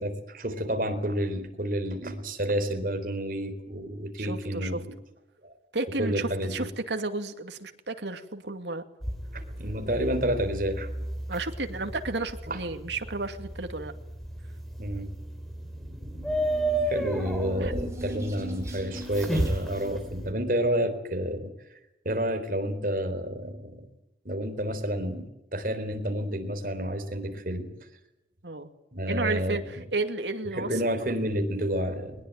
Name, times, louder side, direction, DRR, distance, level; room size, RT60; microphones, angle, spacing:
voice 1, 0.0-4.9 5.4-5.5 6.0-6.7 9.3-10.9 12.5-12.6 14.8-15.1 16.9-21.5 22.1-23.9 24.2-27.7 28.9-29.6 30.5-32.2, equal, 50° right, 7 dB, 3.9 m, -30 dB
voice 2, 4.2-4.8 5.7-8.8 11.3-13.9 17.6-17.7 28.4-28.7 29.1-30.8, right 3 dB, 90° right, 7 dB, 2.5 m, -32 dB
sound 1, 9.0-20.3, right 1 dB, ahead, 3.8 m, -33 dB
sound 2, 15.6-20.9, equal, 15° right, 6.0 m, -42 dB
22.0 x 21.0 x 9.1 m, 0.88 s
head